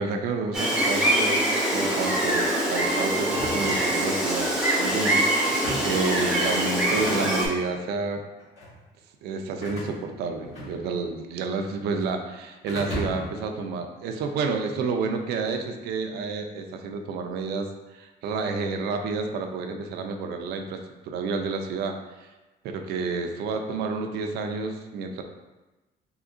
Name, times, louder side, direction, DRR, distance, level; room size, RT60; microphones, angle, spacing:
voice 1, 0.0-8.2 9.2-22.3 22.6-25.2, right 4 dB, 80° right, 5 dB, 0.4 m, -30 dB
Gull seagull, 0.5-7.5, right 1 dB, 5° right, 0.7 m, -24 dB
sound 1, 3.3-4.4 5.4-6.1 6.8-7.6 8.4-8.8 9.6-11.1 11.4-12.2 12.7-13.4, equal, 40° left, 1.5 m, -36 dB
3.7 x 2.8 x 2.5 m, 1.1 s
cardioid pair, 145°, 17 cm